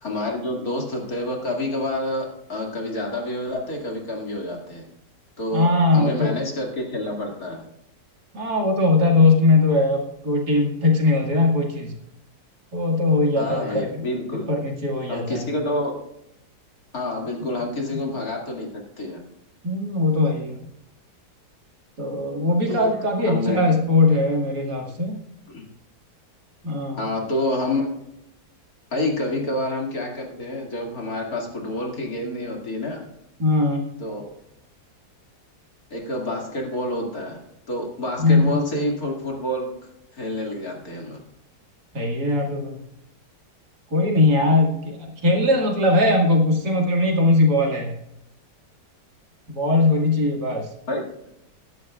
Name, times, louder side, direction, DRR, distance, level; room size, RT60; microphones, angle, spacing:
voice 1, 0.0-4.8 5.4-5.7 5.9-7.6 13.4-14.5 15.1-15.9 16.9-19.2 22.7-22.9 23.2-23.6 25.5-25.6 27.0-27.9 28.9-33.1 34.0-34.2 35.9-39.7 40.1-41.2 50.9-51.0, left 1 dB, 55° left, 0 dB, 2.8 m, -28 dB
voice 2, 5.5-6.3 8.3-11.9 12.7-14.0 14.5-15.5 17.9-18.0 19.6-20.6 22.0-25.2 26.6-27.0 33.4-33.8 38.2-38.5 41.9-42.8 43.9-47.9 49.5-50.7, left 2 dB, 65° right, 0 dB, 2.8 m, -20 dB
21.5 x 11.0 x 2.4 m, 0.81 s
omnidirectional pair, 1.9 m